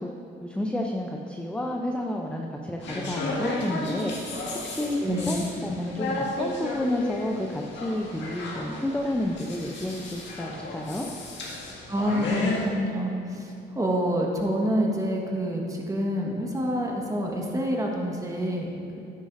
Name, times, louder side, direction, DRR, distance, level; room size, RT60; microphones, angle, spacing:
voice 1, 0.0-4.3 4.6-11.1, left 1 dB, 5° left, 1 dB, 0.5 m, -30 dB
sound 1, 2.8-12.7, left 2 dB, 65° left, 1.8 m, -33 dB
voice 2, 5.0-5.4 11.9-19.0, equal, 15° right, -1 dB, 1.4 m, -27 dB
10.0 x 9.0 x 2.6 m, 2.6 s
cardioid pair, 90°, 20 cm